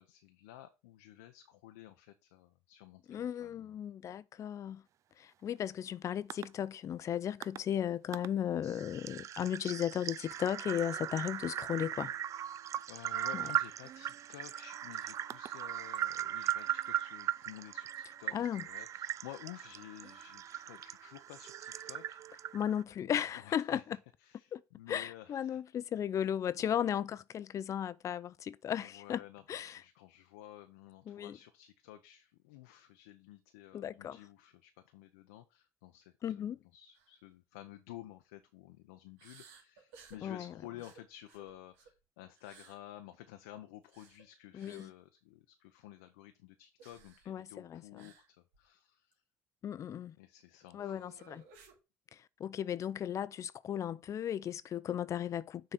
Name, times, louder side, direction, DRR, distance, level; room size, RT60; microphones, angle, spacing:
voice 1, 0.0-3.7 12.4-22.5 23.3-25.6 26.6-27.0 28.7-49.2 50.2-51.2, left 13 dB, 90° left, 0.7 m, -53 dB
voice 2, 3.1-4.8 5.2-12.1 13.3-13.4 18.3-18.6 22.5-23.8 24.5-24.6 24.9-29.2 29.5-29.8 31.1-31.4 33.7-34.2 36.2-36.6 40.2-40.4 44.5-44.9 47.3-47.8 49.6-50.1 50.7-51.4 52.4-55.7, left 9 dB, 45° left, 0.5 m, -35 dB
sound 1, 6.3-6.5 7.4-7.6 8.1-8.3 8.6-22.8, right 11 dB, 50° right, 0.3 m, -39 dB
sound 2, 36.9-37.2 37.5-37.7 39.2-40.2 40.8-42.0 42.4-42.8 43.8-44.2 44.6-44.9 46.8-47.3 48.0-48.3 48.5-48.7 49.1-49.2 50.8-51.8, right 5 dB, 85° right, 2.3 m, -58 dB
6.5 x 4.0 x 5.9 m
supercardioid pair, 75°, 7 cm